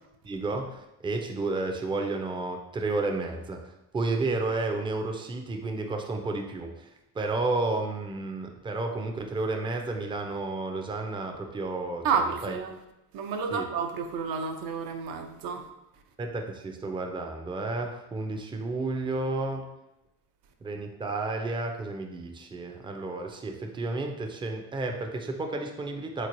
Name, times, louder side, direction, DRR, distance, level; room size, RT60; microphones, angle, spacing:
voice 1, 0.2-12.5 13.5-13.7 16.2-19.7 20.6-26.3, right 3 dB, 15° right, 4 dB, 0.4 m, -32 dB
voice 2, 12.0-12.8 13.1-15.7, right 5 dB, 65° right, 5 dB, 0.6 m, -30 dB
3.8 x 3.1 x 2.5 m, 0.90 s
supercardioid pair, 75°, 38 cm